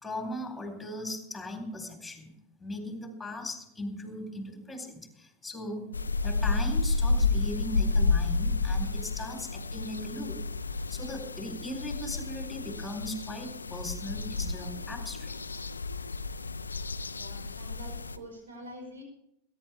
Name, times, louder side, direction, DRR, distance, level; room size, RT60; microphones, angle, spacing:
voice 1, 0.0-2.3 2.6-5.9 6.2-10.4 10.9-15.4, left 1 dB, 10° left, 4 dB, 3.8 m, -38 dB
sound 1, 5.9-18.2, left 3 dB, 80° left, 0.6 m, -31 dB
voice 2, 17.1-19.0, equal, 70° right, 1 dB, 4.9 m, -46 dB
21.5 x 10.5 x 3.4 m, 0.76 s
figure-of-eight pair, 85°, 0 cm